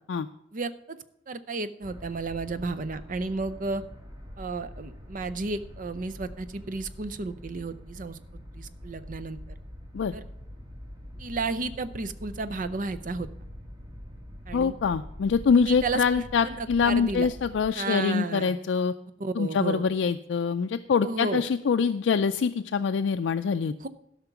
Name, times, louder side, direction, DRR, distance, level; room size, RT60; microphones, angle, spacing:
voice 1, 0.5-1.0 1.3-3.8 4.4-8.2 8.6-9.4 10.1-10.2 11.2-13.3 14.5-14.7 15.6-17.3 17.7-18.5 19.2-19.8 21.0-21.4 23.8-23.9, right 3 dB, 45° right, 13 dB, 0.6 m, -33 dB
sound 1, 1.8-17.7, equal, 20° right, 1.5 m, -44 dB
voice 2, 14.5-18.9 19.4-23.7, left 6 dB, 80° left, 7 dB, 0.4 m, -25 dB
12.5 x 5.8 x 5.9 m, 0.79 s
head